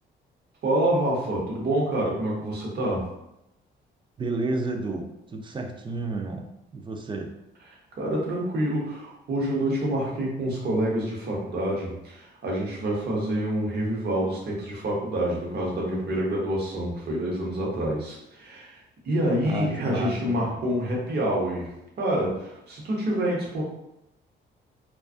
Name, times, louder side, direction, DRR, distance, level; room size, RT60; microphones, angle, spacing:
voice 1, 0.6-3.1 8.0-21.7 22.0-23.6, right 1 dB, 55° right, -3 dB, 0.9 m, -27 dB
voice 2, 4.2-6.5 6.7-7.3 19.4-20.6, right 2 dB, 25° right, 3 dB, 0.4 m, -31 dB
2.4 x 2.3 x 2.4 m, 0.85 s
cardioid pair, 90°, 20 cm